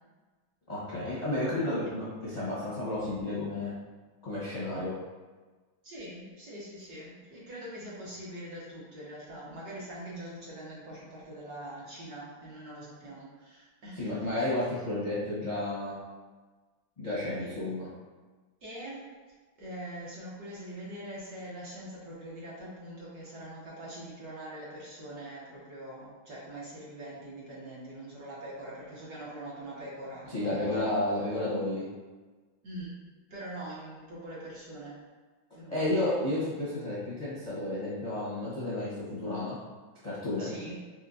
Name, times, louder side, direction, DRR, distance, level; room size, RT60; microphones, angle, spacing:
voice 1, 0.7-3.7 4.2-5.0 14.0-16.0 17.0-17.9 30.3-31.9 35.7-39.6 40.0-40.5, left 1 dB, 35° left, -9 dB, 0.6 m, -32 dB
voice 2, 5.8-14.2 17.4-17.6 18.6-19.1 19.6-30.9 32.6-33.0 33.3-35.0 35.5-36.1 40.4-40.8, right 1 dB, 60° right, -7 dB, 1.2 m, -43 dB
4.5 x 3.3 x 2.6 m, 1.3 s
omnidirectional pair, 2.2 m